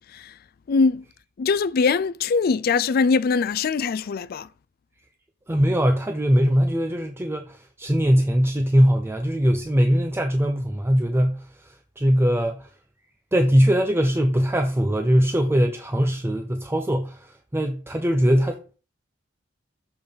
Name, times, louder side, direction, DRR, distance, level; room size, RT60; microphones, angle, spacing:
voice 1, 0.7-1.0 1.4-4.5, left 4 dB, 50° left, 0.4 m, -22 dB
voice 2, 5.5-11.4 12.0-12.7 13.3-18.8, equal, 10° right, 0.5 m, -21 dB
6.9 x 4.0 x 5.1 m
head